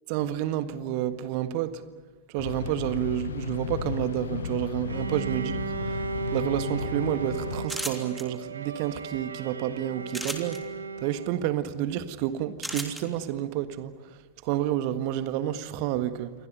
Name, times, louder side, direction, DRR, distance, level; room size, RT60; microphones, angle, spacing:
voice 1, 0.1-1.8 2.3-6.0 6.3-10.6 11.0-13.9 14.4-16.3, right 12 dB, 45° right, 1.7 m, -29 dB
sound 1, 2.4-7.7, left 8 dB, 65° left, 0.8 m, -34 dB
Bowed string instrument, 4.9-11.6, right 6 dB, 75° right, 1.7 m, -36 dB
sound 2, 7.6-8.2 10.1-10.6 12.6-13.0, equal, ahead, 3.3 m, -33 dB
29.0 x 23.5 x 6.7 m
figure-of-eight pair, 90°, 0 cm